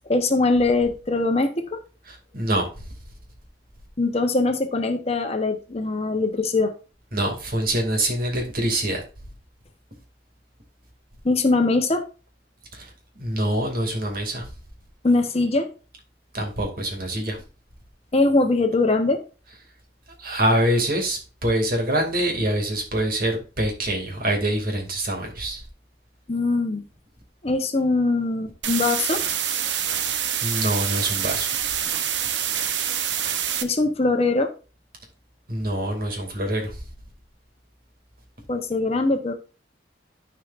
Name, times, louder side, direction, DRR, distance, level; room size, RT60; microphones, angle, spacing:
voice 1, 0.1-1.8 4.0-6.7 11.2-12.0 15.0-15.7 18.1-19.2 26.3-26.8 27.4-29.2 33.6-34.5 38.5-39.3, left 3 dB, 35° left, 6 dB, 0.9 m, -22 dB
voice 2, 2.1-2.6 7.1-9.0 12.7-12.9 13.2-14.5 16.3-17.4 20.2-25.6 29.8-30.1 30.4-31.5 35.5-36.8, right 1 dB, 55° right, 2 dB, 2.4 m, -25 dB
sound 1, 28.6-33.6, right 9 dB, 85° right, 0.9 m, -26 dB
13.5 x 4.9 x 2.5 m, 0.34 s
head